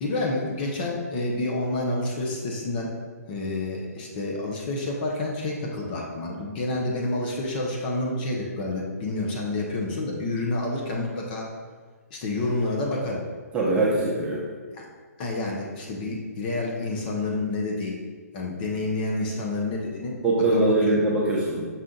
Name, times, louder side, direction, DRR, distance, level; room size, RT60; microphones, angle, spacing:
voice 1, 0.0-2.9 3.3-11.5 12.1-13.2 14.7-14.8 15.2-18.0 18.3-20.3 20.5-21.0, left 2 dB, 35° left, -1 dB, 0.7 m, -29 dB
voice 2, 13.5-14.4 20.2-21.7, right 2 dB, 15° right, -5 dB, 0.7 m, -22 dB
5.7 x 2.4 x 3.8 m, 1.5 s
hypercardioid pair, 150°, 9 cm